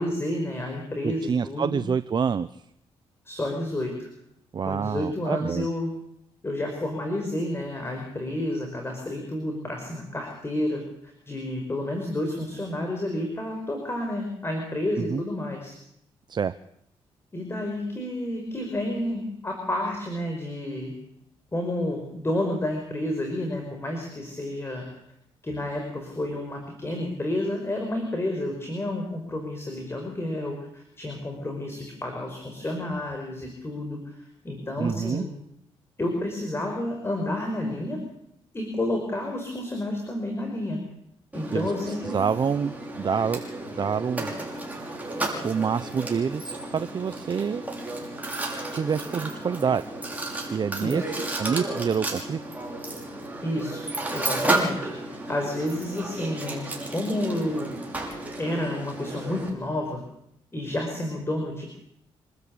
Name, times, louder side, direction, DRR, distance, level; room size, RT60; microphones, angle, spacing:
voice 1, 0.0-1.8 3.3-4.1 4.7-5.9 6.4-15.7 17.3-20.9 21.5-25.0 25.4-35.3 36.0-38.0 38.5-40.8 41.3-42.2 50.8-51.0 53.4-57.8 58.4-60.0 60.5-61.7, left 1 dB, 25° left, 3 dB, 5.3 m, -30 dB
voice 2, 1.0-2.6 4.5-5.7 15.0-15.2 16.3-16.5 34.8-35.2 41.5-41.7 42.1-43.4 43.7-44.3 45.4-47.6 48.7-49.8 50.5-52.4, right 6 dB, 45° right, 12 dB, 0.7 m, -27 dB
Mechanisms, 41.3-59.5, right 2 dB, 15° right, 6.1 m, -33 dB
26.5 x 13.5 x 8.6 m, 0.76 s
cardioid pair, 80°, 10 cm